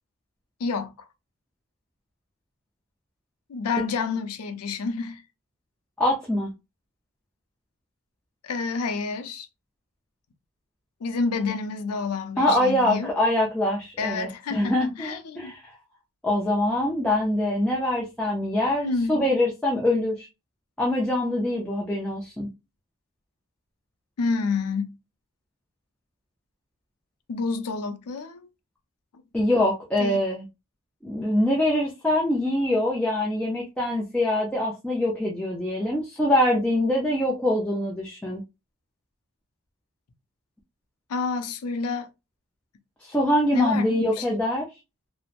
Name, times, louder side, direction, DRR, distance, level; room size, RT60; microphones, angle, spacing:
voice 1, 0.6-0.9 3.5-5.2 8.4-9.5 11.0-13.1 14.0-15.5 18.8-19.2 24.2-24.9 27.3-28.5 30.0-30.2 41.1-42.1 43.5-44.3, left 4 dB, 90° left, 0.5 m, -29 dB
voice 2, 6.0-6.5 12.4-15.7 16.2-20.3 20.8-22.5 29.3-30.4 31.0-38.4 43.0-44.7, left 1 dB, 5° left, 0.4 m, -24 dB
2.9 x 2.0 x 2.4 m
head